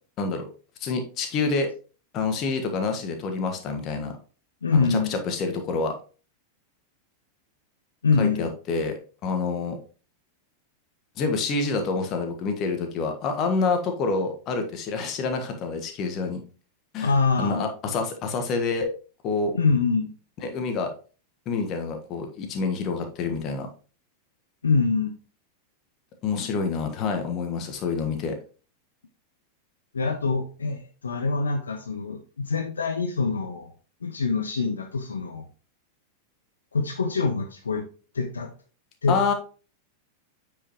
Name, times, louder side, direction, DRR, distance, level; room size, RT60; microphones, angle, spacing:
voice 1, 0.2-0.5 0.8-1.7 2.1-4.2 4.7-6.0 8.2-9.8 11.2-16.4 16.9-17.1 17.4-18.9 19.2-19.5 20.4-20.9 21.4-23.7 26.2-28.4 39.1-39.3, left 4 dB, 35° left, 5 dB, 1.4 m, -27 dB
voice 2, 4.6-5.1 8.0-8.5 17.0-17.7 19.5-20.1 24.6-25.1 29.9-33.7 34.0-35.4 36.7-37.8 38.1-38.5 39.0-39.2, left 4 dB, 70° left, 5 dB, 0.8 m, -24 dB
8.7 x 5.3 x 3.0 m, 0.36 s
figure-of-eight pair, 90°, 0 cm